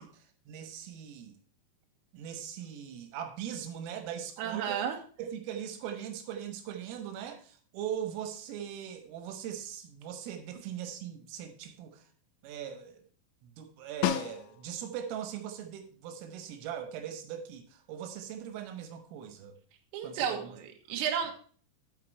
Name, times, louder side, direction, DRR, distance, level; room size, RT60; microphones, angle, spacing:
voice 1, 0.0-1.4 2.1-4.8 5.2-12.0 12.4-13.0 13.4-19.6 20.0-20.6 20.9-21.0, right 9 dB, 90° right, 7 dB, 3.8 m, -40 dB
voice 2, 4.4-5.0 19.9-21.3, right 8 dB, 70° right, 2 dB, 3.5 m, -32 dB
Snare drum, 14.0-14.9 19.4-19.5, left 13 dB, 85° left, 3.2 m, -32 dB
12.5 x 5.8 x 4.6 m, 0.43 s
omnidirectional pair, 5.7 m